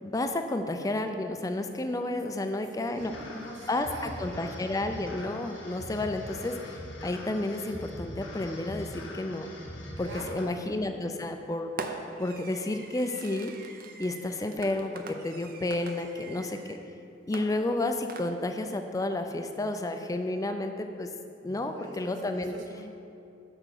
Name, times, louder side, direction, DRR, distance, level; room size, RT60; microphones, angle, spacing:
voice 1, 0.0-3.1 3.7-9.5 10.0-11.9 12.2-13.5 14.0-16.8 17.3-21.1 21.4-22.6, left 2 dB, 20° left, 6 dB, 0.4 m, -31 dB
voice 2, 2.8-4.4 10.0-10.5 21.4-22.9, right 1 dB, 75° right, 0 dB, 1.3 m, -45 dB
sound 1, 3.0-10.4, left 1 dB, 80° left, 1.5 m, -42 dB
Fireworks, 10.3-10.7 11.8-16.8 17.3-18.7, right 3 dB, 50° right, 0.6 m, -43 dB
6.4 x 6.1 x 6.6 m, 2.7 s
head